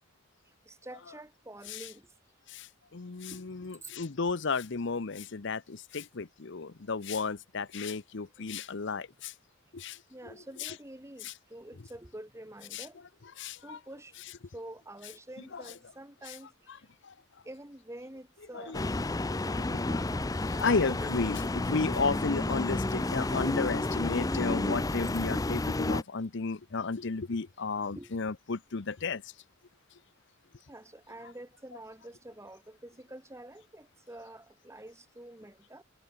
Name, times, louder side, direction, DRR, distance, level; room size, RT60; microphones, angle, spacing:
voice 1, 0.7-2.1 3.3-3.4 3.8-3.9 10.1-13.0 13.6-14.1 14.5-16.5 17.4-19.0 19.4-19.9 20.7-21.2 28.0-28.2 30.7-35.8, right 1 dB, 15° right, 2.1 m, -47 dB
voice 2, 2.5-9.3 9.7-10.0 10.6-10.7 11.2-11.3 12.7-12.9 13.4-13.8 15.5-15.6 16.3-16.4 17.0-17.1 18.5-18.8 19.9-20.0 20.3-29.2, left 4 dB, 60° left, 0.8 m, -33 dB
sound 1, 18.7-26.0, left 2 dB, 15° left, 0.5 m, -31 dB
head